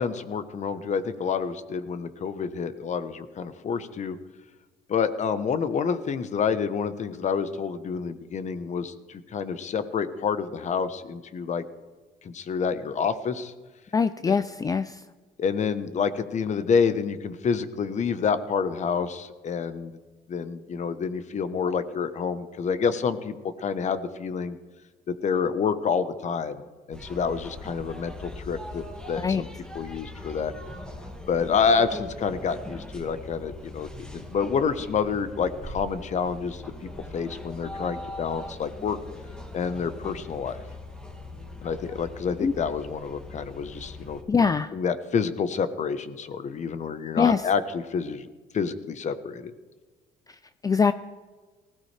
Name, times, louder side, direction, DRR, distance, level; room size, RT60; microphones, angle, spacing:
voice 1, 0.0-4.2 4.9-11.6 12.2-13.5 14.3-14.4 15.4-20.0 20.3-23.3 23.6-24.6 25.1-29.5 29.7-30.5 31.3-36.6 37.1-39.0 39.5-40.6 41.6-44.2 44.7-48.3 48.5-49.5, left 6 dB, 45° left, 12 dB, 1.1 m, -28 dB
voice 2, 13.9-15.0 29.2-29.4 42.4-42.5 44.3-44.7 47.2-47.4 50.6-50.9, left 5 dB, 20° left, 12 dB, 0.4 m, -23 dB
sound 1, 26.9-44.2, left 1 dB, 5° left, 2.4 m, -41 dB
19.5 x 16.5 x 3.4 m, 1.3 s
cardioid pair, 110°, 17 cm